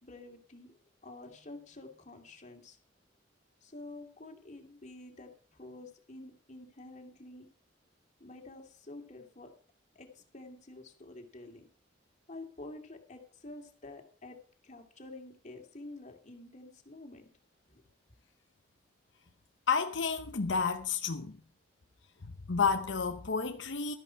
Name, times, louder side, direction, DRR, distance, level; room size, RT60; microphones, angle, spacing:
voice 1, 0.0-2.8 3.6-7.5 8.2-9.5 9.9-11.7 12.3-14.4 14.6-17.3 17.7-17.8, left 2 dB, 40° left, 2.6 m, -49 dB
voice 2, 19.7-21.4 22.2-23.9, left 5 dB, 80° left, 0.8 m, -31 dB
13.5 x 11.0 x 4.6 m
head